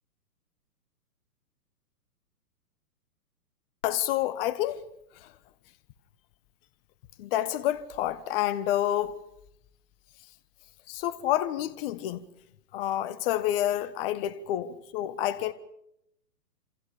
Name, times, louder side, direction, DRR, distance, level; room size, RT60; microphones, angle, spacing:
voice 1, 3.8-4.8 5.2-5.3 7.2-9.2 10.9-12.2 12.7-15.5, left 12 dB, 35° left, 1.5 m, -28 dB
28.0 x 28.0 x 5.2 m
hypercardioid pair, 130°, 48 cm